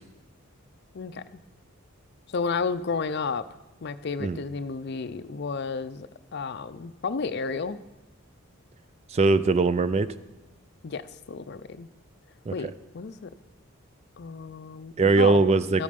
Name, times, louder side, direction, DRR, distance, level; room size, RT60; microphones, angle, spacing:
voice 1, 2.3-3.4 3.8-7.8 10.8-11.9 12.5-13.3 14.2-15.4 15.7-15.8, left 5 dB, 50° left, 13 dB, 0.5 m, -32 dB
voice 2, 9.1-10.1 12.5-12.6 15.0-15.8, right 3 dB, 30° right, 14 dB, 0.3 m, -21 dB
13.0 x 8.5 x 5.2 m, 1.1 s
head